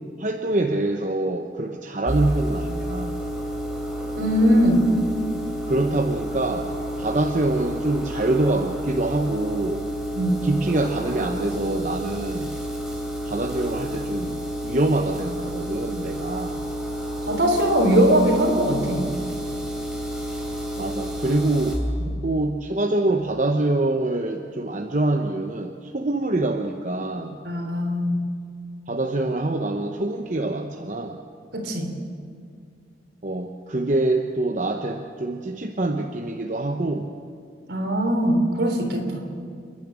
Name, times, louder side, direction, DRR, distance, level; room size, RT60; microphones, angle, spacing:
voice 1, 0.2-3.2 5.7-6.7 7.0-9.8 10.4-12.5 13.2-14.4 14.6-16.6 20.8-21.8 22.2-27.4 28.9-31.2 33.2-37.1, right 2 dB, 45° right, 3 dB, 0.9 m, -25 dB
sound 1, 2.1-21.8, equal, 5° right, 3.0 m, -30 dB
voice 2, 4.2-4.9 10.1-10.4 17.3-19.1 22.0-22.1 27.4-28.2 31.5-31.9 37.7-39.2, equal, 80° right, 2 dB, 3.6 m, -20 dB
28.5 x 10.5 x 8.8 m, 2.2 s
head